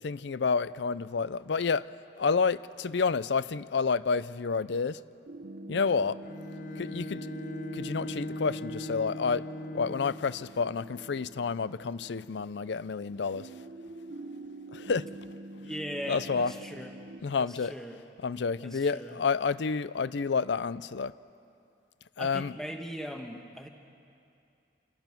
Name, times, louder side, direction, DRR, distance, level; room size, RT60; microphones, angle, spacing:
voice 1, 0.0-1.9 2.2-5.0 5.7-6.2 6.8-7.3 7.7-9.4 9.7-13.5 14.7-15.1 16.1-16.5 17.2-17.7 18.2-21.1 22.2-22.5, left 5 dB, 65° left, 17 dB, 0.5 m, -29 dB
sound 1, 5.3-17.2, right 2 dB, 55° right, 0.9 m, -45 dB
Bowed string instrument, 6.2-10.4, left 1 dB, 45° left, 0.9 m, -39 dB
voice 2, 15.6-16.9 17.4-18.0 18.6-19.2 22.2-23.7, equal, 5° left, 3 dB, 1.4 m, -39 dB
27.5 x 17.5 x 6.0 m, 2.5 s
head